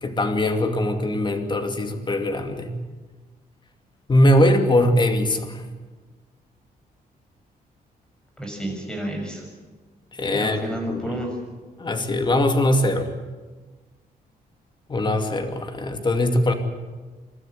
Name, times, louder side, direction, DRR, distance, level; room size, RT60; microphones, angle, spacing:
voice 1, 0.0-2.7 4.1-5.7 10.2-11.2 11.8-13.2 14.9-16.5, left 1 dB, 30° left, 6 dB, 2.5 m, -21 dB
voice 2, 8.4-9.4 10.3-11.3, right 1 dB, 5° left, 2 dB, 6.8 m, -31 dB
28.0 x 13.0 x 9.9 m, 1.3 s
cardioid pair, 130°, 16 cm